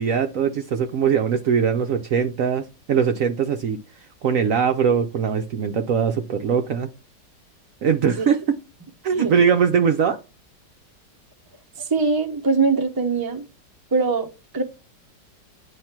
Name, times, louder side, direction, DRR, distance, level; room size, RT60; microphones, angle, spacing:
voice 1, 0.0-3.8 4.2-6.9 7.8-8.4 9.0-10.2, right 7 dB, 65° right, 0.9 m, -21 dB
voice 2, 11.8-13.4 13.9-14.3 14.5-14.6, right 4 dB, 20° right, 0.5 m, -22 dB
9.8 x 3.3 x 4.4 m
omnidirectional pair, 1.9 m